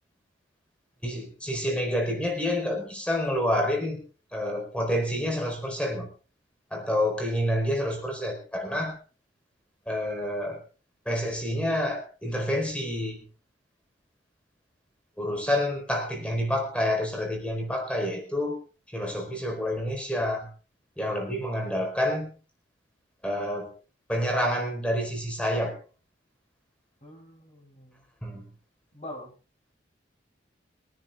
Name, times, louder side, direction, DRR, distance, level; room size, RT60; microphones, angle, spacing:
voice 1, 1.0-4.0 4.3-6.1 6.7-9.0 9.9-10.6 11.1-13.2 15.2-18.6 18.9-20.5 21.0-22.3 23.2-23.7 24.1-25.7 28.2-28.5, equal, 5° left, 3 dB, 4.4 m, -28 dB
voice 2, 27.0-28.0 28.9-29.3, left 1 dB, 35° left, 1 dB, 6.5 m, -44 dB
23.0 x 10.5 x 3.7 m, 0.35 s
head